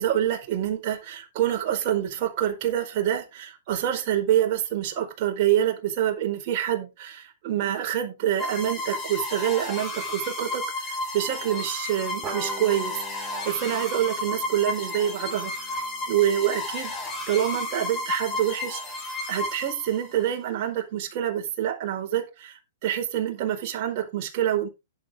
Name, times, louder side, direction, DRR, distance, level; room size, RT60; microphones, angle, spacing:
voice 1, 0.0-15.8 16.1-16.9 17.3-24.7, right 11 dB, 45° right, 3 dB, 4.7 m, -26 dB
sound 1, 8.4-20.2, left 2 dB, 15° left, 7.3 m, -33 dB
sound 2, 12.2-17.1, right 3 dB, 25° right, 4.6 m, -42 dB
11.0 x 10.5 x 3.6 m, 0.25 s
figure-of-eight pair, 110°, 0 cm